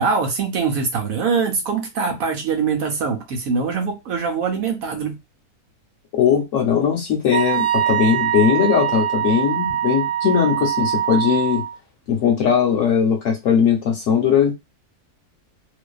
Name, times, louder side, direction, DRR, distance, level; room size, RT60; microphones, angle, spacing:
voice 1, 0.0-5.2, right 5 dB, 70° right, 1.0 m, -23 dB
voice 2, 6.1-11.6 12.1-14.5, left 7 dB, 65° left, 0.9 m, -19 dB
Wind instrument woodwind instrument, 7.3-11.7, right 10 dB, 45° right, 0.5 m, -23 dB
2.5 x 2.2 x 2.3 m
omnidirectional pair, 1.6 m